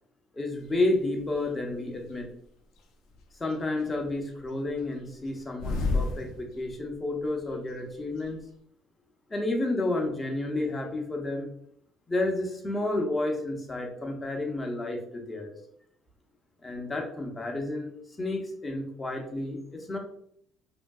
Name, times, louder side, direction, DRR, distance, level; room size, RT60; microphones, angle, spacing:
voice 1, 0.3-2.3 3.4-8.4 9.3-11.5 12.1-15.6 16.6-20.0, left 2 dB, 15° left, 2 dB, 0.5 m, -31 dB
sound 1, 0.7-0.8 1.3-2.2 2.8-3.6 3.9-7.0 7.3-7.4 7.5-8.3, left 3 dB, 65° left, 0.5 m, -32 dB
3.2 x 2.6 x 2.2 m, 0.68 s
cardioid pair, 180°, 0 cm